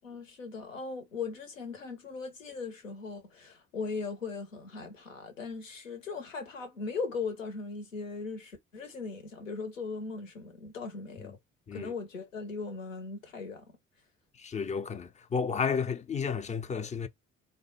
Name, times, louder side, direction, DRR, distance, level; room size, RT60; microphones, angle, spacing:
voice 1, 0.0-11.4 11.7-13.6, left 4 dB, 85° left, 0.7 m, -39 dB
voice 2, 14.4-17.1, left 6 dB, 20° left, 0.4 m, -32 dB
3.3 x 2.2 x 2.9 m
figure-of-eight pair, 45°, 38 cm